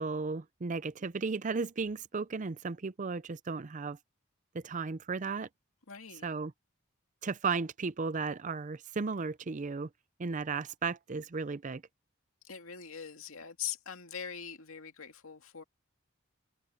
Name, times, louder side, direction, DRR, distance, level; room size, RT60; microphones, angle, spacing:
voice 1, 0.0-4.0 4.5-5.5 6.2-6.5 7.2-9.9 10.2-11.8, right 4 dB, 40° right, 0.5 m, -35 dB
voice 2, 5.9-6.2 12.4-15.6, left 8 dB, 90° left, 2.2 m, -42 dB
head